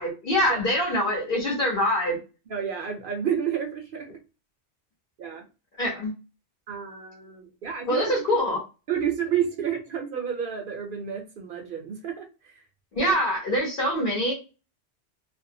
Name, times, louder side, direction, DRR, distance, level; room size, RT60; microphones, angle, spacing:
voice 1, 0.0-2.2 5.8-6.1 7.9-8.6 12.9-14.3, equal, 55° left, -5 dB, 1.1 m, -24 dB
voice 2, 2.5-4.1 5.2-5.4 6.7-8.2 8.9-12.2 13.0-13.1, right 8 dB, 60° right, 4 dB, 0.7 m, -30 dB
2.6 x 2.1 x 2.6 m, 0.31 s
omnidirectional pair, 1.1 m